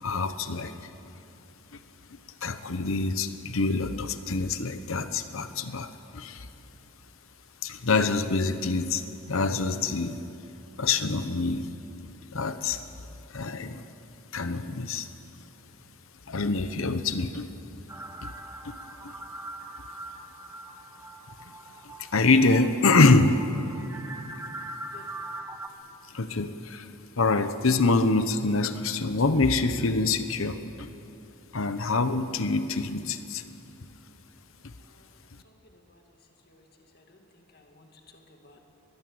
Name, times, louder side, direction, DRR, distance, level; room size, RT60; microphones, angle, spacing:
voice 1, 0.0-0.8 2.4-6.5 7.6-10.2 10.8-11.7 12.3-12.8 13.3-13.8 14.3-15.1 16.3-17.5 18.2-18.3 18.6-18.8 19.0-19.1 22.0-23.4 26.1-26.9 27.2-30.9 31.5-33.4, left 3 dB, 70° left, 10 dB, 1.0 m, -25 dB
sound 1, 17.9-25.7, right 2 dB, 15° right, 1.1 m, -42 dB
voice 2, 24.9-25.5 34.8-35.1 35.4-36.0 36.5-36.7 36.9-38.6, left 1 dB, 45° left, 3 dB, 2.1 m, -57 dB
22.0 x 20.5 x 7.9 m, 2.8 s
head